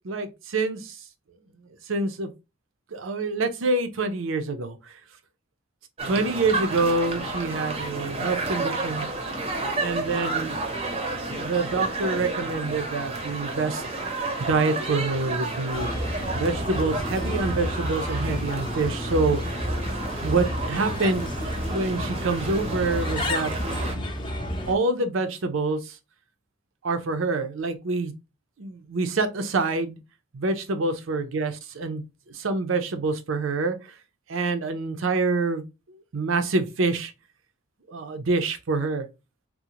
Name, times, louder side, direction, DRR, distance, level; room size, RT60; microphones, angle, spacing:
voice 1, 0.0-1.0 1.9-2.3 2.9-4.9 6.1-9.1 9.8-10.6 11.0-13.8 14.4-15.9 16.3-19.6 20.2-21.3 21.6-23.5 24.7-26.0 26.8-28.1 28.6-30.0 30.3-34.0 34.3-35.6 36.1-37.1 37.9-39.1, right 3 dB, 90° right, 0.5 m, -26 dB
sound 1, 6.0-24.0, right 2 dB, 30° right, 0.6 m, -31 dB
Bird, 15.7-24.8, left 1 dB, 25° left, 0.5 m, -30 dB
3.7 x 2.1 x 2.8 m
head